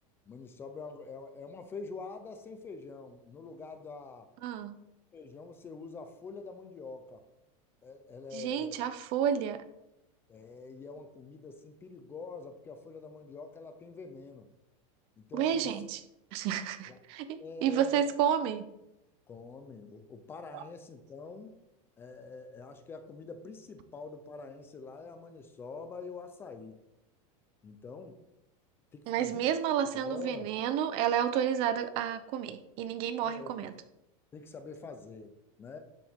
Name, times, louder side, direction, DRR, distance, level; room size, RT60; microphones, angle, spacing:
voice 1, 0.3-4.3 5.1-7.2 7.8-8.8 10.3-14.5 15.2-15.7 16.9-17.0 17.4-18.0 19.3-21.6 22.0-26.8 27.6-28.2 28.9-29.4 30.0-30.5 33.2-33.7 34.3-35.8, left 4 dB, 15° left, 8 dB, 0.5 m, -45 dB
voice 2, 4.4-4.8 8.3-9.6 15.3-16.0 16.3-18.7 20.5-20.6 29.1-33.7, right 9 dB, 30° right, 11 dB, 0.5 m, -30 dB
12.0 x 7.8 x 3.6 m, 0.89 s
supercardioid pair, 180°, 17 cm